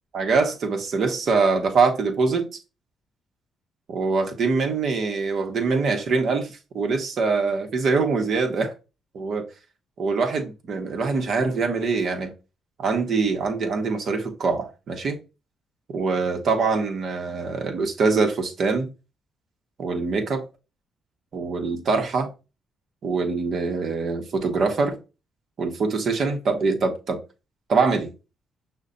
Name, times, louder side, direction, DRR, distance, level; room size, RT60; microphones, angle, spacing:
voice 1, 0.1-2.5 3.9-8.7 9.1-9.5 10.0-12.3 12.8-15.2 15.9-18.9 19.8-20.4 21.3-22.3 23.0-25.0 25.6-27.2 27.7-28.1, right 4 dB, 60° right, 1.0 m, -24 dB
6.2 x 2.2 x 3.8 m
cardioid pair, 90°, 0 cm